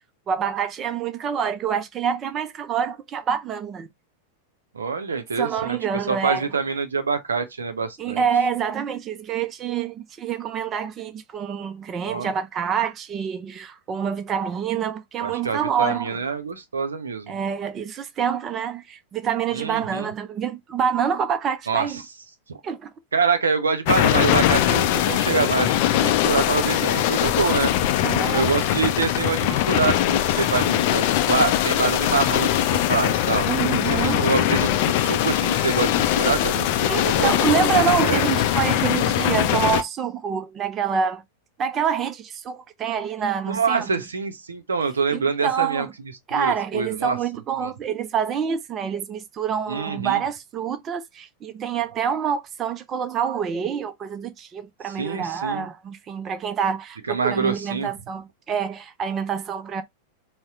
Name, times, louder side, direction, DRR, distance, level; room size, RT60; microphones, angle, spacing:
voice 1, 0.3-3.9 5.4-6.4 8.0-16.2 17.3-22.0 22.6-22.9 28.0-28.5 33.5-34.4 36.9-41.2 41.6-43.9 45.1-45.9 46.3-59.8, right 7 dB, 25° right, 0.5 m, -26 dB
voice 2, 4.7-5.8 6.1-8.2 12.0-12.3 15.2-17.4 19.5-20.1 21.7-21.9 22.5-22.6 23.1-27.7 28.3-33.5 34.0-37.3 37.6-38.2 43.5-45.9 46.3-47.2 47.6-47.7 49.7-50.2 55.0-55.7 57.1-57.9, right 5 dB, 70° right, 0.6 m, -25 dB
sound 1, 23.9-39.8, left 12 dB, 50° left, 0.4 m, -21 dB
4.1 x 2.1 x 3.5 m
figure-of-eight pair, 90°, 0 cm